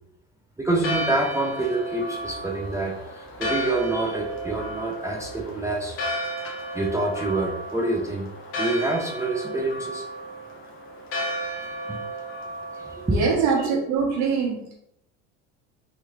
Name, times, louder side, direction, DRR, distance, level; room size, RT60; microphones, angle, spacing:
voice 1, 0.6-6.0 6.7-8.3 8.6-10.0 11.9-12.0 13.0-13.2, right 2 dB, 10° right, -2 dB, 0.3 m, -26 dB
Church bell, 0.7-13.4, equal, 40° left, 0.8 m, -33 dB
voice 2, 13.1-14.6, right 5 dB, 55° right, 0 dB, 1.1 m, -23 dB
3.0 x 3.0 x 2.2 m, 0.76 s
supercardioid pair, 95°, 34 cm